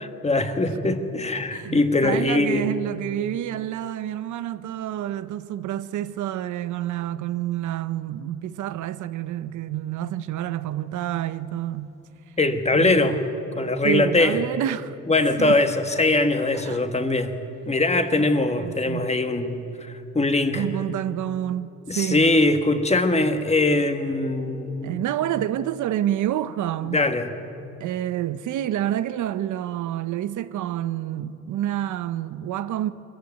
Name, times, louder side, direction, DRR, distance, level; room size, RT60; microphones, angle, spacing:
voice 1, 0.2-2.7 12.4-13.2 13.6-14.4 15.1-17.3 17.7-20.7 21.9-25.0 26.9-27.3, left 2 dB, 20° left, 1.6 m, -22 dB
voice 2, 1.5-11.9 12.7-13.0 13.8-15.0 15.4-15.6 16.5-16.8 18.1-19.1 20.5-22.4 24.8-27.1 27.8-32.9, right 12 dB, 75° right, 0.7 m, -28 dB
22.0 x 14.5 x 9.4 m
cardioid pair, 90°, 30 cm